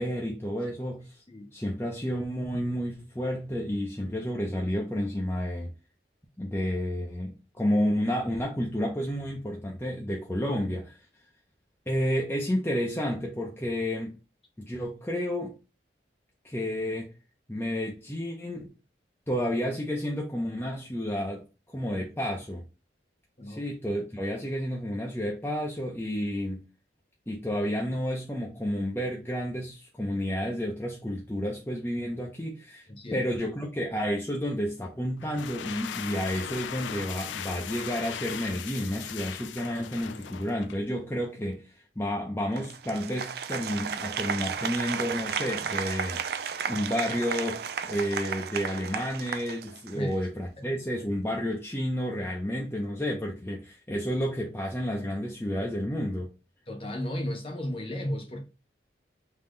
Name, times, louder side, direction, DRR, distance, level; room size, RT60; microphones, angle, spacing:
voice 1, 0.0-1.2 1.5-5.7 6.4-11.0 11.9-14.1 14.6-15.5 16.4-17.1 17.5-18.7 19.3-22.6 23.5-26.6 27.3-56.3, equal, 15° left, 0.6 m, -31 dB
voice 2, 23.4-23.7 32.9-33.2 49.9-50.2 50.6-50.7 56.7-58.4, left 1 dB, 30° left, 0.9 m, -34 dB
sound 1, 35.2-40.9, left 9 dB, 90° left, 0.4 m, -38 dB
Applause, 42.6-50.1, right 7 dB, 60° right, 0.4 m, -33 dB
3.7 x 2.8 x 3.8 m
head